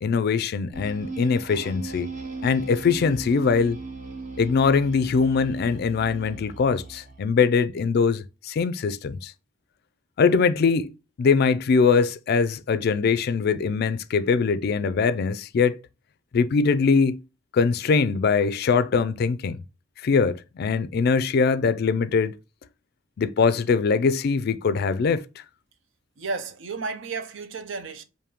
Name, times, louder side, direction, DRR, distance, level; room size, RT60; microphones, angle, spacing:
voice 1, 0.0-2.1 2.4-3.8 4.4-9.3 10.2-15.8 16.3-17.2 17.5-19.6 20.0-22.3 23.2-25.2, left 5 dB, 55° left, 0.3 m, -22 dB
sound 1, 0.7-7.3, right 3 dB, 40° right, 0.9 m, -37 dB
voice 2, 26.2-28.0, right 4 dB, 70° right, 0.6 m, -32 dB
5.0 x 2.6 x 2.9 m
head